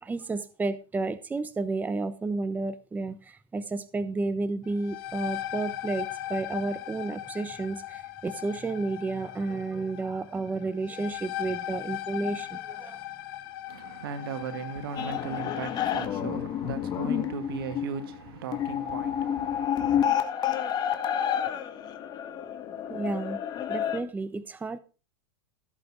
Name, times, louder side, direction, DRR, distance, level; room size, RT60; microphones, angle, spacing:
voice 1, 0.0-13.0 22.9-23.4 23.7-24.8, right 3 dB, 15° right, 1.0 m, -32 dB
sound 1, 4.6-16.1, left 14 dB, 60° left, 1.7 m, -39 dB
voice 2, 13.7-19.7, right 7 dB, 70° right, 2.1 m, -37 dB
sound 2, 15.0-24.0, left 9 dB, 35° left, 1.9 m, -29 dB
16.0 x 7.9 x 4.6 m
hypercardioid pair, 105°, 13 cm